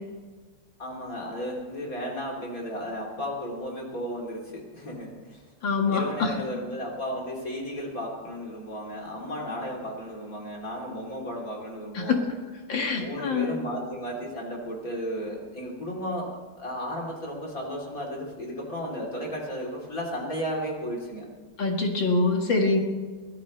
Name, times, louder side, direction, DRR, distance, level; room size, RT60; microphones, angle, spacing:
voice 1, 0.8-5.4 5.9-12.2 13.0-16.3 16.6-21.3, equal, 40° left, -2 dB, 3.7 m, -34 dB
voice 2, 5.6-6.3 11.9-12.3 12.7-13.6 21.6-22.8, left 3 dB, 65° left, 2 dB, 2.4 m, -25 dB
23.0 x 16.0 x 3.2 m, 1.4 s
omnidirectional pair, 2.3 m